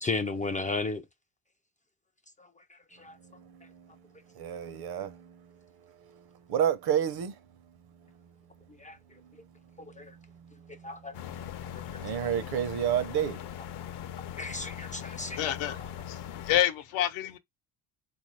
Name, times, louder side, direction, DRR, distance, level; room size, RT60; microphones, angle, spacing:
voice 1, 0.0-1.0 2.4-2.5 3.0-3.2 8.8-9.0 10.0-10.1 10.8-11.2 14.4-15.8, left 3 dB, 20° left, 0.3 m, -34 dB
voice 2, 3.2-3.9 4.3-5.6 6.0-7.4 9.2-9.3 9.7-11.3 12.0-13.4, right 9 dB, 55° right, 0.8 m, -32 dB
sound 1, 11.1-16.6, left 10 dB, 60° left, 0.6 m, -40 dB
voice 3, 15.4-15.8 16.1-16.2 16.5-17.4, left 12 dB, 85° left, 0.9 m, -27 dB
3.7 x 2.6 x 3.1 m
cardioid pair, 100°, 46 cm